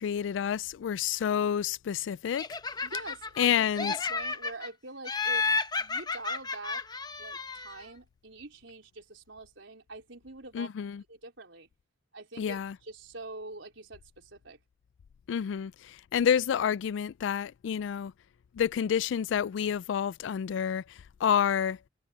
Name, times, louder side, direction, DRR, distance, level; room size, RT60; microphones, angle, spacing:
voice 1, 0.0-2.4 3.4-3.9 10.5-11.0 12.4-12.8 15.3-18.1 18.5-21.8, left 8 dB, 75° left, 0.3 m, -29 dB
Laughter, 2.4-3.5 3.8-4.7 5.1-7.8, left 4 dB, 20° left, 0.9 m, -32 dB
voice 2, 2.8-5.5 5.8-6.8 7.2-10.7 11.1-11.7 12.1-14.6, right 2 dB, 80° right, 4.1 m, -45 dB
head